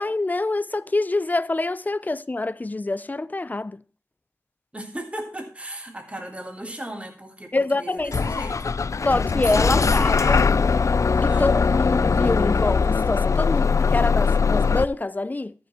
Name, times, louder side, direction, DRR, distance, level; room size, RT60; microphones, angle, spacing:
voice 1, 0.0-3.8 7.5-8.1 9.0-10.5 11.2-15.5, left 2 dB, 30° left, 0.7 m, -25 dB
voice 2, 4.7-8.7 9.5-10.5 11.3-11.6, right 1 dB, 25° right, 3.2 m, -36 dB
Bus / Engine starting, 8.1-14.8, left 5 dB, 70° left, 0.5 m, -21 dB
14.0 x 10.0 x 4.5 m
wide cardioid pair, 80°, 5 cm